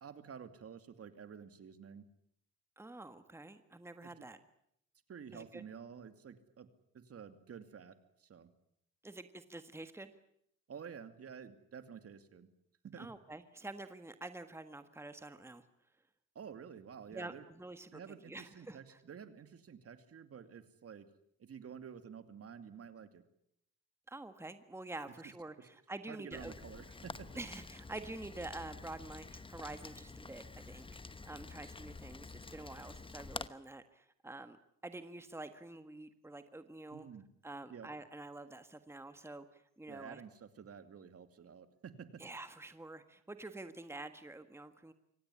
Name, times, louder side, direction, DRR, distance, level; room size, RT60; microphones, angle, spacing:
voice 1, 0.0-2.0 4.0-4.1 5.1-6.7 6.9-8.5 10.7-12.5 12.8-13.1 16.3-17.5 17.9-21.1 21.4-23.2 26.1-27.3 36.9-37.2 37.7-37.9 39.9-42.2, right 7 dB, 50° right, 10 dB, 2.6 m, -50 dB
voice 2, 2.8-4.4 5.3-5.6 9.0-10.1 13.0-15.6 17.1-18.0 18.3-19.0 24.1-26.5 27.3-34.6 34.8-37.1 37.4-40.2 42.2-44.9, right 2 dB, 10° right, 9 dB, 1.6 m, -48 dB
Rain, 26.3-33.5, left 3 dB, 15° left, 1.0 m, -48 dB
25.0 x 18.0 x 9.9 m, 0.74 s
cardioid pair, 90°, 30 cm